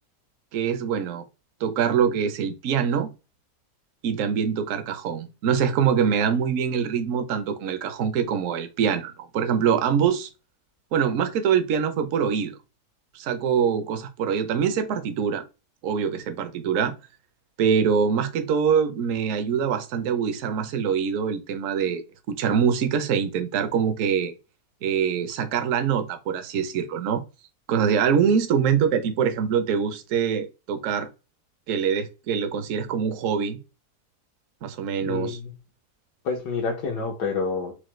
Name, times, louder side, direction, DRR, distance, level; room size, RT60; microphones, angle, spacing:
voice 1, 0.5-1.2 1.6-3.1 4.0-10.3 10.9-12.5 13.1-15.4 15.8-16.9 17.6-24.3 24.8-27.2 27.7-31.1 31.7-33.6 34.6-35.4, right 7 dB, 65° right, 0.9 m, -24 dB
voice 2, 35.0-35.5 36.2-37.7, left 4 dB, 90° left, 1.7 m, -28 dB
4.8 x 2.2 x 3.1 m
omnidirectional pair, 1.7 m